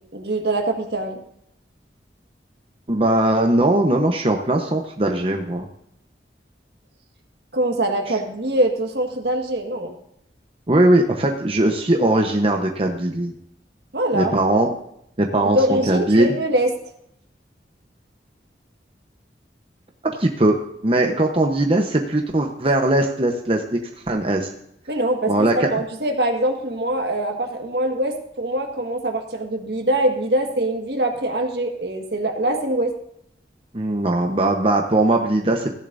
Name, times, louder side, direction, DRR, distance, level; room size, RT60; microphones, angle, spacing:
voice 1, 0.1-1.2 7.5-9.9 13.9-14.3 15.4-16.7 24.9-32.9, right 1 dB, 65° right, 4 dB, 1.8 m, -23 dB
voice 2, 2.9-5.7 10.7-13.3 14.1-14.7 15.2-16.3 20.0-23.8 24.1-24.5 25.3-25.7 33.7-35.7, right 1 dB, 30° right, 3 dB, 0.9 m, -19 dB
15.5 x 10.5 x 2.6 m, 0.74 s
head